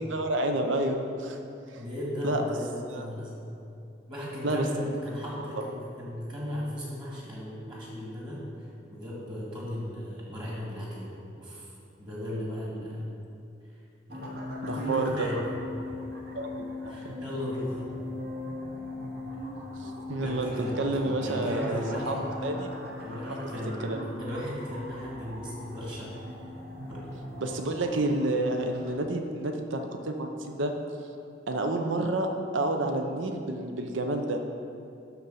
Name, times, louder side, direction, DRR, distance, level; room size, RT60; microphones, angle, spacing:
voice 1, 0.0-1.4 1.7-1.8 2.2-2.4 2.9-3.0 4.4-4.7 5.4-5.5 14.6-15.3 16.3-16.7 19.8-20.5 20.8-22.2 22.4-22.7 23.3-23.4 23.8-24.0 27.4-30.7 31.5-34.4, right 2 dB, 85° right, 5 dB, 0.7 m, -29 dB
voice 2, 1.8-3.4 4.1-11.7 12.0-13.1 14.1-14.3 14.6-15.4 16.8-17.8 20.1-22.2 23.0-23.9 24.2-26.1 26.9-27.0, equal, 25° right, -6 dB, 2.2 m, -36 dB
sound 1, 14.1-28.9, left 1 dB, 55° right, 1.1 m, -39 dB
12.0 x 4.0 x 5.7 m, 2.7 s
head